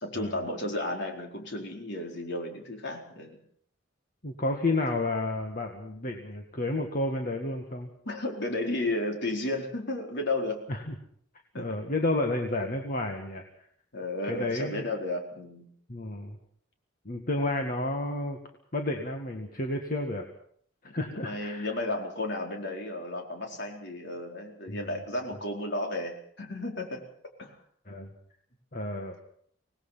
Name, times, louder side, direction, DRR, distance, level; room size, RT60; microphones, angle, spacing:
voice 1, 0.0-3.4 8.0-10.6 11.5-11.8 13.9-15.7 20.8-27.0 27.4-27.6, left 2 dB, 60° left, 2 dB, 4.4 m, -33 dB
voice 2, 4.2-7.9 10.7-11.0 11.5-13.4 14.3-14.9 15.9-16.4 17.1-18.4 18.7-20.3 20.9-21.7 24.7-25.0 27.9-28.1 28.7-29.2, left 2 dB, 45° left, 3 dB, 2.0 m, -31 dB
25.5 x 19.0 x 5.9 m, 0.62 s
head